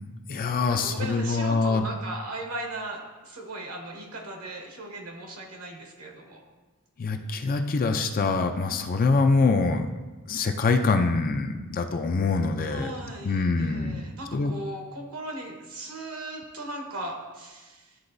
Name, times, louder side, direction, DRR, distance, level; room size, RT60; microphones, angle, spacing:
voice 1, 0.3-1.9 7.0-9.9 10.3-13.0 13.2-14.0 14.3-14.5, left 3 dB, 40° left, 6 dB, 0.4 m, -24 dB
voice 2, 0.8-6.4 12.6-18.0, right 1 dB, 75° right, 1 dB, 1.2 m, -38 dB
11.0 x 3.8 x 2.6 m, 1.2 s
head